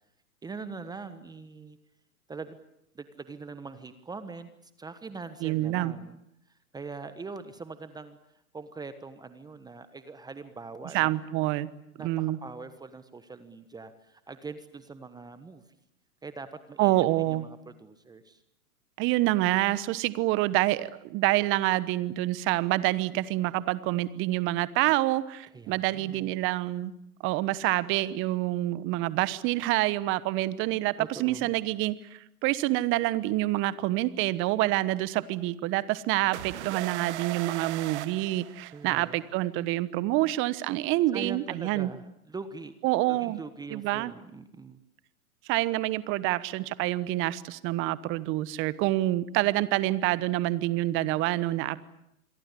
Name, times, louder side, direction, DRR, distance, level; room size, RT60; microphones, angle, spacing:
voice 1, 0.4-1.8 2.3-2.6 2.9-4.5 4.8-6.2 6.7-8.2 8.5-11.1 12.0-15.6 16.2-18.4 25.5-26.3 31.0-31.5 38.7-39.2 41.1-42.7 43.1-44.8, right 4 dB, 10° right, 11 dB, 1.3 m, -42 dB
voice 2, 5.4-5.9 10.9-11.7 12.0-12.4 16.8-17.4 19.0-26.9 27.2-41.9 42.8-43.4 43.7-44.1 45.5-51.8, right 17 dB, 25° right, 17 dB, 1.1 m, -27 dB
sound 1, 36.3-39.1, right 15 dB, 50° right, 1.3 m, -37 dB
27.0 x 22.5 x 8.4 m, 0.80 s
hypercardioid pair, 120°, 45 cm